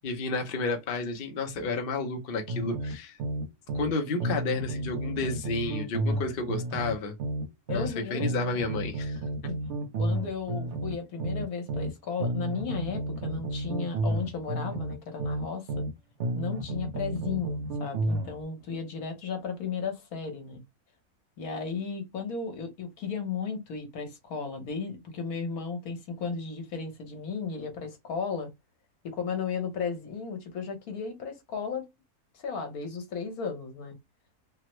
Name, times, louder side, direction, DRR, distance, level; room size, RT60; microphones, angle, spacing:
voice 1, 0.0-3.2 3.7-7.1 7.7-9.2, left 3 dB, 50° left, 0.7 m, -31 dB
sound 1, 2.5-3.9 4.2-7.9 8.2-11.9 12.2-15.9 16.2-18.3, right 1 dB, 55° right, 0.9 m, -31 dB
voice 2, 7.7-8.2 9.9-15.8 16.4-20.6 21.4-28.5 29.0-31.9 32.3-34.0, left 5 dB, 70° left, 1.4 m, -34 dB
3.4 x 2.1 x 2.9 m
omnidirectional pair, 1.6 m